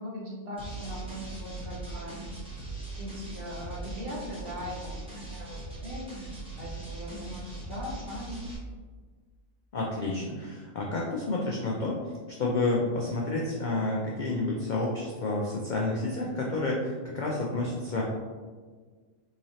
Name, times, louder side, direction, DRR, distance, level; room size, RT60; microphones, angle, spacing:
voice 1, 0.0-2.2 3.0-8.4, equal, 50° right, -3 dB, 0.9 m, -40 dB
sound 1, 0.6-8.6, right 2 dB, 5° right, 0.8 m, -40 dB
voice 2, 9.7-12.0 12.3-18.1, left 2 dB, 70° left, -3 dB, 0.4 m, -30 dB
3.8 x 3.0 x 2.7 m, 1.5 s
omnidirectional pair, 1.4 m